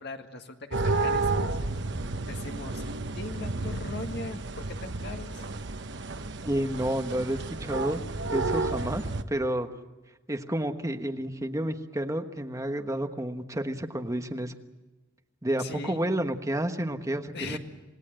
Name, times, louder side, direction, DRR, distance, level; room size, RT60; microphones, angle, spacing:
voice 1, 0.0-1.6 2.3-2.8 3.2-5.5 15.6-16.0 17.3-17.6, left 3 dB, 60° left, 5 dB, 1.9 m, -40 dB
sound 1, 0.7-9.2, right 3 dB, 65° right, 1.1 m, -31 dB
voice 2, 6.4-8.0 8.3-9.7 10.3-14.5 15.4-17.6, right 1 dB, 15° right, 6 dB, 1.3 m, -30 dB
27.5 x 18.5 x 7.7 m, 1.1 s
head